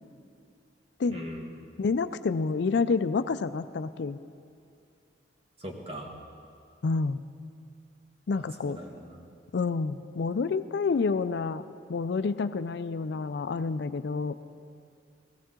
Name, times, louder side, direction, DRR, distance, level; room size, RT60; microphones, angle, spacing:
voice 1, 1.1-1.5 5.6-6.1 8.3-9.2, equal, 30° right, 1 dB, 1.5 m, -40 dB
voice 2, 1.8-4.2 6.8-7.2 8.3-8.8 9.5-11.6 11.9-14.4, left 4 dB, 65° left, 12 dB, 0.4 m, -28 dB
17.5 x 15.5 x 3.7 m, 2.5 s
head